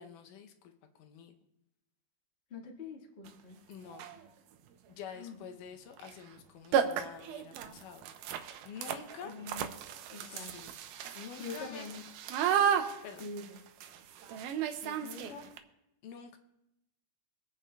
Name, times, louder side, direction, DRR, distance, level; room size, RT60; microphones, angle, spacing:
voice 1, 0.0-1.3 3.7-4.1 4.9-8.0 8.7-9.3 10.3-10.7 11.1-11.9 13.0-13.2 14.8-15.4 16.0-16.4, left 7 dB, 80° left, 6 dB, 2.2 m, -48 dB
voice 2, 2.5-3.6 5.1-5.4 8.6-8.7 9.2-9.7 10.1-10.5 11.4-12.0 13.2-13.6 15.0-15.5, left 4 dB, 40° left, 0 dB, 0.8 m, -44 dB
sound 1, 3.3-3.4 3.9-4.3 6.0-6.1 6.4-6.5 6.7-15.6, right 8 dB, 80° right, 2.1 m, -34 dB
24.5 x 8.7 x 2.2 m, 0.87 s
omnidirectional pair, 3.8 m